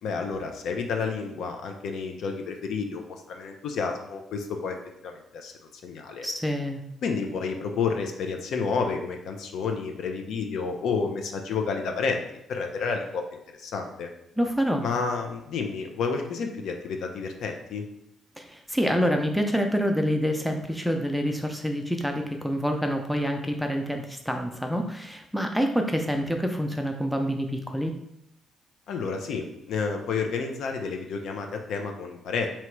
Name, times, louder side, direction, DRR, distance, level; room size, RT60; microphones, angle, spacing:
voice 1, 0.0-4.8 5.0-5.5 5.8-6.3 7.0-12.2 12.5-13.2 13.6-14.1 14.8-17.8 28.9-32.5, left 5 dB, 75° left, 4 dB, 0.6 m, -30 dB
voice 2, 6.2-6.8 14.4-14.8 18.4-28.0, equal, ahead, 3 dB, 0.6 m, -27 dB
3.0 x 2.9 x 4.6 m, 0.80 s
cardioid pair, 90°, 0 cm